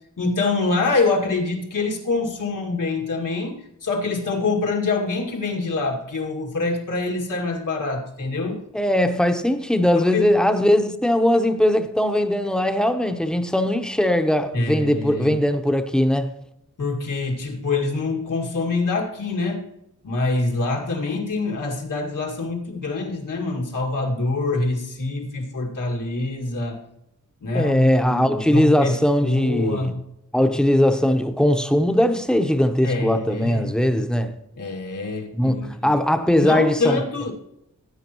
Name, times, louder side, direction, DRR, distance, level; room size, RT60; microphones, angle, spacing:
voice 1, 0.2-8.6 10.0-10.3 14.5-15.4 16.8-19.7 20.0-26.8 27.4-30.0 32.8-33.7 34.6-35.9 36.4-37.3, left 3 dB, 85° left, 2.2 m, -25 dB
voice 2, 8.7-16.3 27.5-29.9 30.3-34.4 35.3-37.0, left 1 dB, ahead, 0.8 m, -20 dB
16.0 x 9.0 x 3.0 m
wide cardioid pair, 115°, 31 cm